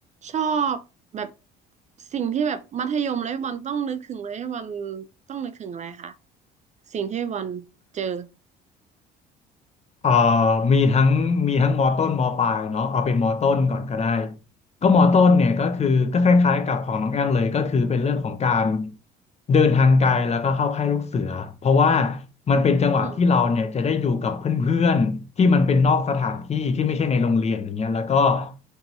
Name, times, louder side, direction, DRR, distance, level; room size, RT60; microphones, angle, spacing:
voice 1, 0.2-0.8 1.1-1.3 2.1-6.1 6.9-7.6 7.9-8.3 23.0-23.2, right 7 dB, 35° right, 0.4 m, -28 dB
voice 2, 10.0-14.4 14.8-19.0 19.5-28.5, left 4 dB, 30° left, 0.6 m, -20 dB
4.6 x 2.6 x 2.8 m
supercardioid pair, 70°, 21 cm